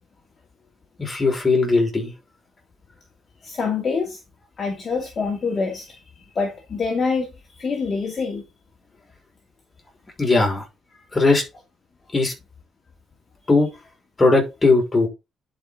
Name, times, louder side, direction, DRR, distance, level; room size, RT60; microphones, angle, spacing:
voice 1, 1.0-2.1 10.2-10.6 11.1-11.4 12.1-12.3 13.5-13.7 14.2-15.1, left 3 dB, 20° left, 5.8 m, -18 dB
voice 2, 3.4-4.2 4.6-6.0 6.3-7.3 7.5-8.4, left 4 dB, 40° left, 2.6 m, -25 dB
11.0 x 5.4 x 4.1 m
cardioid pair, 85°, 0 cm